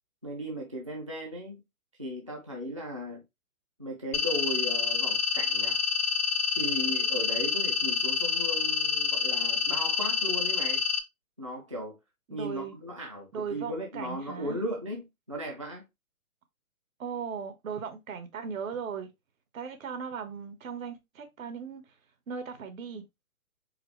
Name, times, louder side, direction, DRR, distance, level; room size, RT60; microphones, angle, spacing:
voice 1, 0.2-1.6 2.0-3.2 3.8-5.8 6.6-10.8 11.4-12.0 12.3-15.8, equal, 25° right, 0.4 m, -36 dB
sound 1, 4.1-11.0, left 5 dB, 90° left, 1.2 m, -28 dB
voice 2, 12.3-12.7 13.3-14.6 17.0-19.1 19.5-21.8 22.3-23.0, right 6 dB, 65° right, 1.4 m, -37 dB
4.7 x 3.5 x 3.2 m
hypercardioid pair, 165°, 43 cm